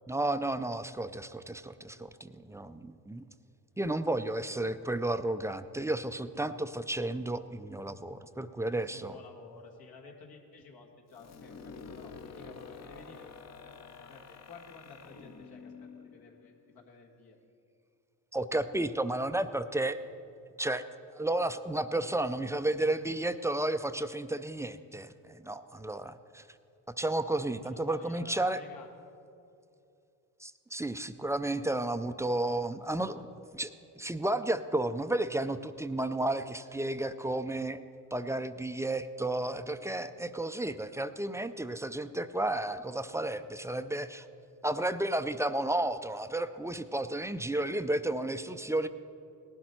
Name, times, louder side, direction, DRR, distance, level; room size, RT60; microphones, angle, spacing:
voice 1, 0.1-3.2 3.8-9.1 18.3-20.0 20.6-20.8 21.1-26.4 27.0-28.6 30.4-33.3 33.5-37.8 38.1-44.3 44.6-48.9, right 1 dB, 10° right, 11 dB, 0.4 m, -32 dB
voice 2, 8.7-17.4 27.5-28.9, left 4 dB, 75° left, 1 dB, 1.9 m, -53 dB
sound 1, 11.1-16.8, left 5 dB, 45° left, 0.8 m, -49 dB
18.0 x 11.5 x 4.5 m, 2.6 s
cardioid pair, 105°, 37 cm